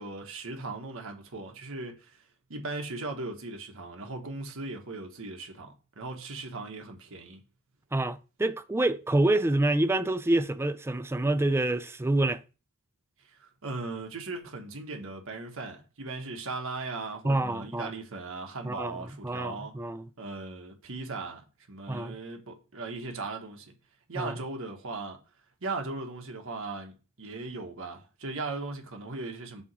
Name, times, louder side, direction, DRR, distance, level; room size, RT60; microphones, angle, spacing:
voice 1, 0.0-2.2 2.5-7.4 13.4-19.8 20.2-23.7 24.1-25.2 25.6-29.6, right 3 dB, 70° right, 1.3 m, -38 dB
voice 2, 7.9-12.4 17.2-17.9 18.6-19.0 19.2-20.1 21.9-22.2 24.2-24.4, right 2 dB, 10° right, 0.4 m, -27 dB
7.1 x 3.0 x 4.8 m
head